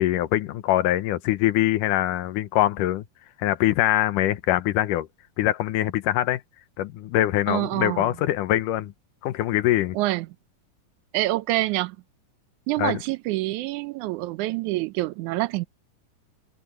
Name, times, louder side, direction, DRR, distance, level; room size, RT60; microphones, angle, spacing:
voice 1, 0.0-3.0 3.4-5.1 5.4-6.4 6.8-8.9 9.2-10.0 12.8-13.0, left 14 dB, 90° left, 2.5 m, -23 dB
voice 2, 7.5-8.1 9.9-10.3 11.1-12.0 12.7-15.7, right 18 dB, 80° right, 2.0 m, -26 dB
open air
omnidirectional pair, 3.6 m